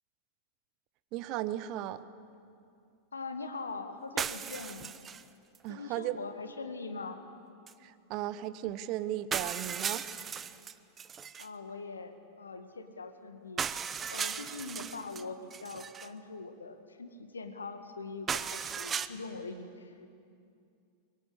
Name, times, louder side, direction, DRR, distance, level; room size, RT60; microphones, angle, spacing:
voice 1, 1.1-2.0 5.6-6.2 7.8-10.1, right 13 dB, 40° right, 14 dB, 1.0 m, -36 dB
voice 2, 3.1-5.0 5.7-7.2 11.4-13.6 14.1-20.1, left 3 dB, 75° left, 8 dB, 1.8 m, -42 dB
sound 1, 4.2-5.3 5.5-5.6 7.7-7.8 8.7-8.8 9.3-11.5 13.6-15.2 15.5-16.1 18.3-19.1, right 7 dB, 20° right, 0.8 m, -36 dB
24.0 x 22.0 x 8.3 m, 2.5 s
figure-of-eight pair, 90°, 0 cm